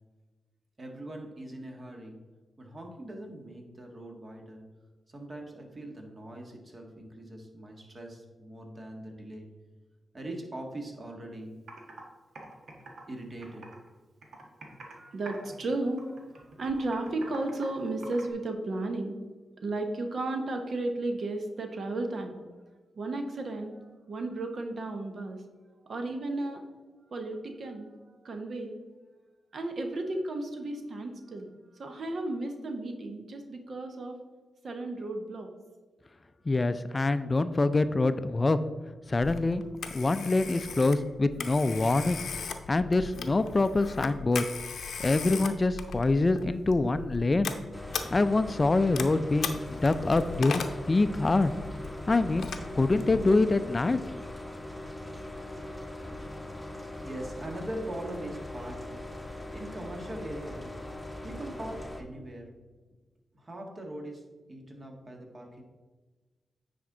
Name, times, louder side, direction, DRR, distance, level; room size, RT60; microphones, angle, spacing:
voice 1, 0.8-2.2 2.6-4.6 5.1-9.5 10.1-11.5 13.1-13.6 57.0-59.1 59.5-60.8 61.2-62.5 63.3-64.2 64.5-65.6, right 1 dB, 40° right, 2 dB, 1.6 m, -41 dB
Computer keyboard, 11.2-11.3 11.7-12.0 12.4-13.9 14.2-15.0 15.3-15.6 16.0-18.3, right 3 dB, 80° right, 1.3 m, -46 dB
voice 2, 14.7-19.2 19.6-22.4 23.0-25.4 25.9-26.6 27.1-28.7 29.5-31.5 31.8-34.2 34.6-35.5, right 2 dB, 65° right, 5 dB, 1.0 m, -34 dB
voice 3, 36.5-38.6 39.1-39.6 39.9-42.2 42.7-44.4 45.0-47.5 48.1-51.5 52.1-52.5 52.7-54.0, left 2 dB, 35° left, 13 dB, 0.4 m, -25 dB
Telephone, 39.2-53.5, left 6 dB, 80° left, 0.6 m, -39 dB
sound 1, 47.7-62.0, left 1 dB, 5° left, 1.0 m, -41 dB
9.4 x 4.3 x 3.8 m, 1.3 s
cardioid pair, 55°, 0 cm